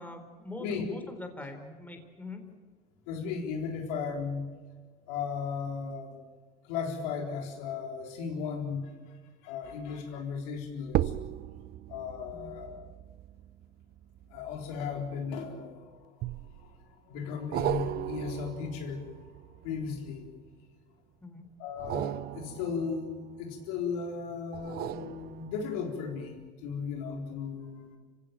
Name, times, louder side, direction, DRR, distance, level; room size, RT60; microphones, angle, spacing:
voice 1, 0.0-2.4 12.3-12.5 21.2-21.4, left 2 dB, 10° left, 5 dB, 4.0 m, -43 dB
voice 2, 3.1-4.5 5.1-6.1 6.6-8.9 9.4-11.1 11.9-12.8 14.3-16.0 16.5-16.7 17.1-19.0 19.6-20.3 21.6-23.1 23.4-28.0, left 6 dB, 75° left, 2 dB, 4.0 m, -36 dB
sound 1, 9.6-10.0 10.8-15.5 16.2-16.8 17.5-20.5 21.7-23.8 24.5-25.9 26.4-26.5, right 15 dB, 50° right, 0.7 m, -37 dB
26.0 x 16.5 x 9.3 m, 1.5 s
supercardioid pair, 90°, 20 cm